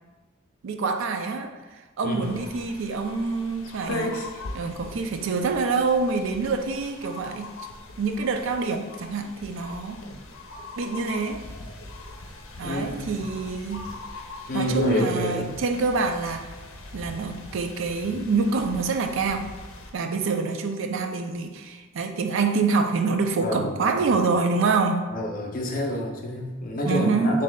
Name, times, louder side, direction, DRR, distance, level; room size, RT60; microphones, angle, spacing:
voice 1, 0.6-4.3 4.5-7.5 8.0-10.0 10.8-11.4 12.6-13.9 14.5-16.5 16.9-19.5 19.9-25.1 26.9-27.4, right 4 dB, 65° right, 6 dB, 0.4 m, -26 dB
voice 2, 2.0-2.4 12.6-13.1 14.5-15.5 23.4-24.1 25.1-27.4, left 1 dB, 40° left, 0 dB, 0.6 m, -28 dB
sound 1, 2.2-19.9, left 2 dB, 80° left, 0.6 m, -40 dB
6.4 x 2.6 x 2.2 m, 1.2 s
head